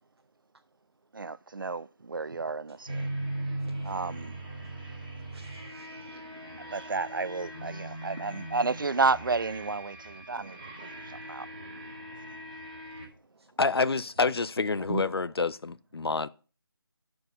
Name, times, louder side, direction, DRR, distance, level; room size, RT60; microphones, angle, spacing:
voice 1, 1.1-3.1 3.8-4.4 6.6-11.5, right 4 dB, 55° right, 0.4 m, -31 dB
sound 1, 2.9-13.1, right 1 dB, 15° right, 1.2 m, -39 dB
voice 2, 5.3-6.9 10.3-10.6 11.0-12.1 14.9-15.0, right 3 dB, 90° right, 0.9 m, -43 dB
voice 3, 13.6-16.3, left 4 dB, 75° left, 0.5 m, -28 dB
6.3 x 4.8 x 6.3 m
figure-of-eight pair, 175°, 13 cm